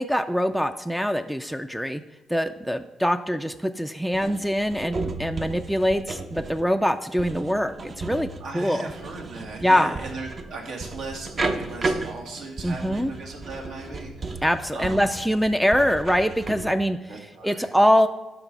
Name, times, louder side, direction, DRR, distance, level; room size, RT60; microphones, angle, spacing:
voice 1, 0.0-2.0 2.3-8.9 9.6-10.0 12.6-13.1 14.4-18.1, equal, ahead, 9 dB, 0.3 m, -23 dB
sound 1, 4.1-16.8, right 3 dB, 35° right, 0.7 m, -34 dB
voice 2, 8.4-14.4 14.7-15.0 17.1-17.7, right 3 dB, 75° right, 1 dB, 2.0 m, -37 dB
11.5 x 4.1 x 5.3 m, 1.2 s
cardioid pair, 125°, 0 cm